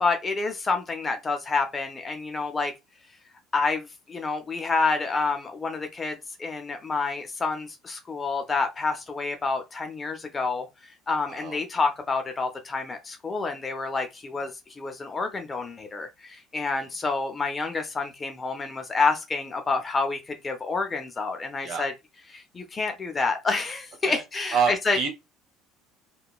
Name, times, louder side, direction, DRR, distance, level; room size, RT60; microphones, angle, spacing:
voice 1, 0.0-2.7 3.5-21.9 22.3-25.1, left 4 dB, 25° left, 0.6 m, -28 dB
voice 2, 24.5-25.1, right 6 dB, 60° right, 1.1 m, -27 dB
2.8 x 2.2 x 2.2 m
supercardioid pair, 95°, 0 cm